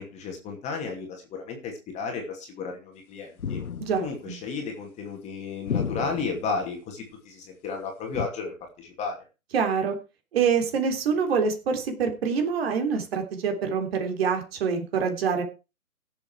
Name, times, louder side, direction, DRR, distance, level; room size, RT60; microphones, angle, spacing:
voice 1, 0.0-3.6 4.0-9.2, left 4 dB, 15° left, 2 dB, 2.7 m, -33 dB
sound 1, 3.4-4.2 5.7-6.5 8.1-8.3, left 7 dB, 80° left, 1.1 m, -31 dB
voice 2, 3.8-4.4 9.5-9.9 10.3-15.4, right 6 dB, 45° right, 5 dB, 3.4 m, -25 dB
16.5 x 7.3 x 4.7 m, 0.30 s
hypercardioid pair, 140°, 42 cm